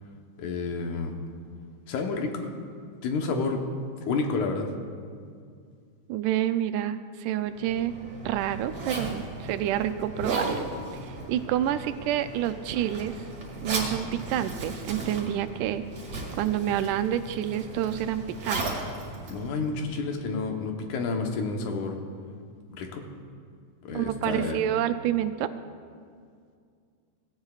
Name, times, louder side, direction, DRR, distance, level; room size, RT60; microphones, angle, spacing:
voice 1, 0.4-1.1 1.9-2.5 3.0-3.6 4.1-4.7 19.3-22.0 22.7-23.0 23.8-24.6, left 4 dB, 80° left, 3 dB, 2.6 m, -30 dB
voice 2, 6.1-8.0 8.3-10.6 11.1-13.2 13.6-15.9 16.4-18.8 23.9-25.5, right 11 dB, 90° right, 10 dB, 2.1 m, -28 dB
Zipper (clothing), 7.5-20.2, right 2 dB, 55° right, 2.9 m, -36 dB
17.5 x 16.5 x 2.4 m, 2.2 s
omnidirectional pair, 3.5 m